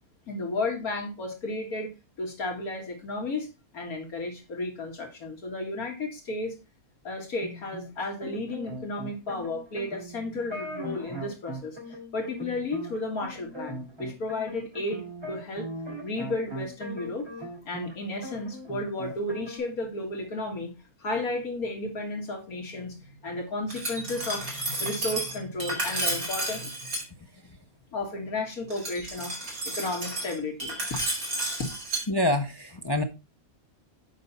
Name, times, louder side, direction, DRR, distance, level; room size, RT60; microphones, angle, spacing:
voice 1, 0.3-1.9 2.2-3.5 3.7-6.6 7.0-11.8 12.1-15.7 16.0-17.3 17.7-20.7 21.0-26.8 27.9-29.3 29.7-31.0 31.4-31.8, left 2 dB, 75° left, 2.3 m, -33 dB
sound 1, 7.4-17.9 18.2-19.6, equal, 20° right, 3.3 m, -40 dB
Glass, 23.7-27.0 28.7-32.0, right 2 dB, 75° right, 3.0 m, -32 dB
voice 2, 32.1-33.0, left 1 dB, 40° left, 0.3 m, -26 dB
7.7 x 5.5 x 4.0 m
omnidirectional pair, 1.5 m